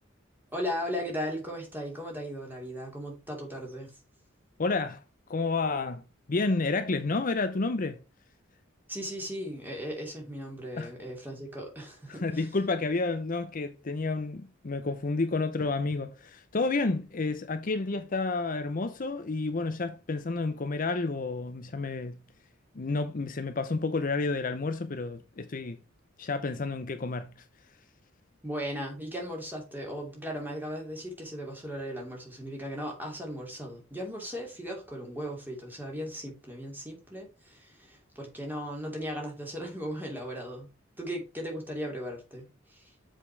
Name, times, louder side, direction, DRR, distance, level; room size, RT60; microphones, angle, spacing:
voice 1, 0.5-3.9 8.9-12.4 28.4-40.7 41.0-42.9, equal, 10° right, 2.8 m, -37 dB
voice 2, 4.6-5.0 5.3-6.0 6.3-8.0 10.8-10.9 12.1-22.2 22.7-25.8 26.2-27.3, left 3 dB, 40° left, 0.6 m, -30 dB
7.3 x 5.2 x 4.6 m
head